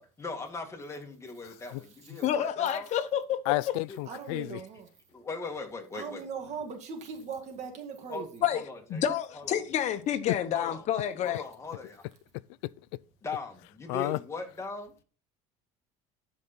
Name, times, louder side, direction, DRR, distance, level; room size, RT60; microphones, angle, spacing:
voice 1, 0.0-2.9 3.9-4.0 5.1-6.3 8.1-9.0 9.3-9.6 10.5-10.8 11.2-12.0 13.2-14.9, left 3 dB, 20° left, 2.2 m, -39 dB
voice 2, 2.2-3.5 8.4-8.6 8.9-11.4, left 10 dB, 50° left, 1.2 m, -29 dB
voice 3, 3.5-4.6 10.3-10.4 13.9-14.2, left 20 dB, 85° left, 0.5 m, -30 dB
voice 4, 4.1-4.9 5.9-8.5, right 5 dB, 50° right, 2.0 m, -39 dB
12.0 x 5.3 x 4.4 m
cardioid pair, 115°, 15 cm